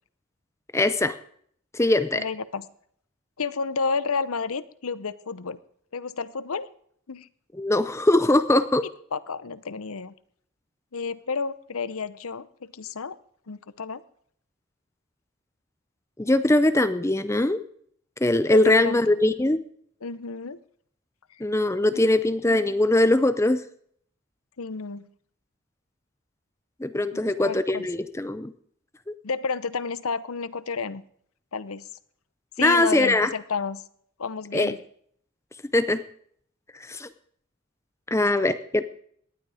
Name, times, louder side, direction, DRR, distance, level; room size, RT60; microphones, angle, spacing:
voice 1, 0.7-1.1 1.7-2.2 7.5-8.9 16.2-17.6 18.2-19.6 21.4-23.6 26.8-28.5 32.6-33.3 34.5-34.7 35.7-36.0 36.9-37.1 38.1-38.8, left 1 dB, 15° left, 12 dB, 0.5 m, -21 dB
voice 2, 2.1-2.7 3.4-5.6 5.9-6.7 7.1-7.3 9.1-10.1 10.9-13.2 13.5-14.0 18.5-19.2 20.0-20.6 24.6-25.1 27.1-27.9 29.2-31.0 31.5-31.8 32.6-33.8 34.2-34.8 38.2-38.3, left 5 dB, 85° left, 16 dB, 0.8 m, -31 dB
18.5 x 11.5 x 5.0 m, 0.63 s
head